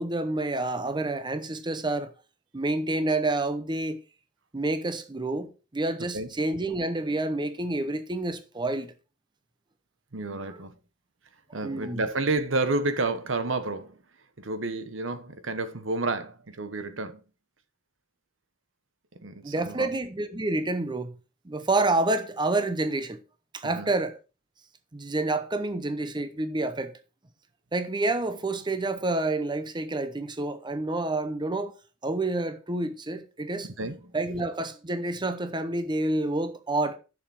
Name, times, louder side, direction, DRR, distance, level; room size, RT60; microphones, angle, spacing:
voice 1, 0.0-2.1 2.5-4.0 4.5-8.9 10.4-10.6 11.5-12.0 19.4-21.1 21.4-23.2 23.5-24.2 24.9-27.0 27.7-31.8 32.0-33.7 34.1-37.0, right 2 dB, 25° right, 0.8 m, -28 dB
voice 2, 10.1-10.7 11.5-14.0 14.4-17.2 19.2-19.9 23.6-23.9 33.6-34.1, right 3 dB, 85° right, 1.2 m, -30 dB
10.5 x 6.7 x 4.4 m
head